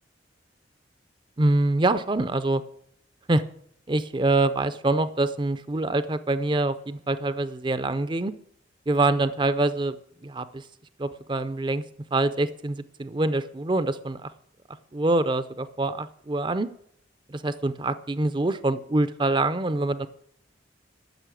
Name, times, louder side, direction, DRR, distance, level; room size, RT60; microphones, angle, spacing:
voice 1, 1.4-2.6 3.3-3.4 3.9-8.3 8.9-10.0 10.2-10.7 11.0-11.8 12.1-14.3 14.9-16.7 17.3-20.1, right 2 dB, 25° right, 13 dB, 0.5 m, -25 dB
13.0 x 6.6 x 9.1 m, 0.68 s
head